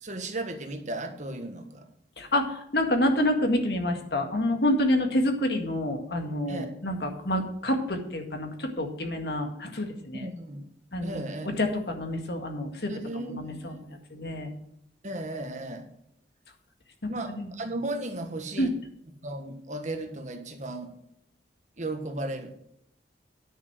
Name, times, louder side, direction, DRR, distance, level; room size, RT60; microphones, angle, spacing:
voice 1, 0.0-1.9 6.5-6.7 10.1-10.6 11.0-11.6 12.9-13.7 15.0-15.9 17.1-18.7 19.2-20.9 21.8-22.5, right 2 dB, 45° right, 5 dB, 1.5 m, -35 dB
voice 2, 2.2-10.3 10.9-11.2 11.6-13.8 14.1-14.5 17.0-17.1 17.4-17.5 18.6-18.7, left 1 dB, 60° left, 4 dB, 1.9 m, -28 dB
10.0 x 6.4 x 6.1 m, 0.76 s
head